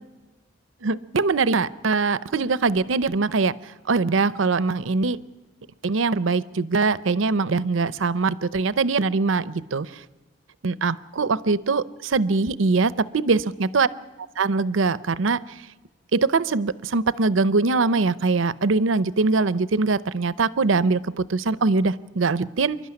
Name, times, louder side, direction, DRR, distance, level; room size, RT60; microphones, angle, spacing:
voice 1, 0.8-3.5 3.9-5.2 5.8-9.9 10.6-13.9 14.4-15.4 16.1-22.8, right 4 dB, 85° right, 17 dB, 0.7 m, -22 dB
27.0 x 12.0 x 9.8 m, 1.2 s
head